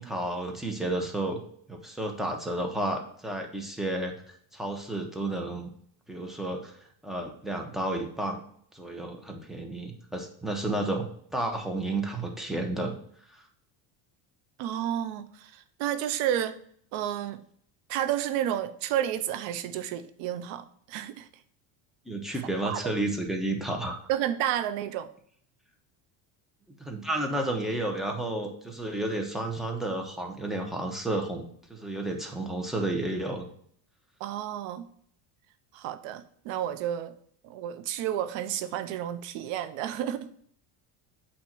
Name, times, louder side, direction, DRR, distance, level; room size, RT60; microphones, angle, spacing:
voice 1, 0.0-1.4 1.7-4.1 4.5-5.7 6.1-6.7 7.0-8.4 8.7-12.9 13.3-13.4 22.1-24.0 26.8-33.5, right 1 dB, ahead, 2 dB, 1.1 m, -31 dB
voice 2, 14.6-16.6 16.9-17.4 17.9-21.3 22.6-22.8 24.1-25.1 34.2-34.8 35.7-37.1 37.4-40.5, right 11 dB, 75° right, 11 dB, 0.8 m, -31 dB
8.5 x 2.9 x 6.0 m, 0.62 s
cardioid pair, 115°, 46 cm